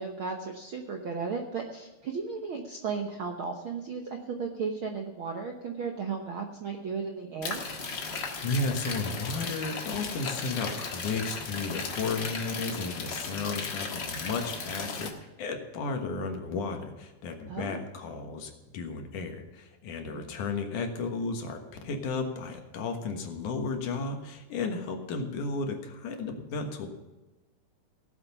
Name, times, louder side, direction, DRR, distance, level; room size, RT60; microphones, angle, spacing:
voice 1, 0.0-7.6 17.5-17.8 20.1-20.3, right 5 dB, 65° right, 2 dB, 1.3 m, -35 dB
sound 1, 7.4-15.1, left 4 dB, 45° left, 1.7 m, -36 dB
voice 2, 8.4-15.1 15.4-26.9, left 3 dB, 70° left, 4 dB, 2.9 m, -33 dB
17.5 x 7.7 x 5.7 m, 1.1 s
omnidirectional pair, 3.8 m